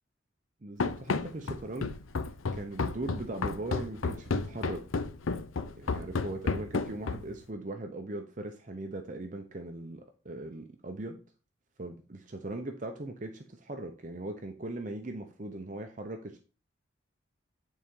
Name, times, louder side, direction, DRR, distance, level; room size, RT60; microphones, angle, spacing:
voice 1, 0.6-2.0 2.5-5.0 5.8-11.2 11.8-16.4, right 2 dB, 40° right, 5 dB, 0.7 m, -39 dB
Run, 0.8-7.4, left 4 dB, 85° left, 0.6 m, -32 dB
9.2 x 4.1 x 3.7 m, 0.36 s
head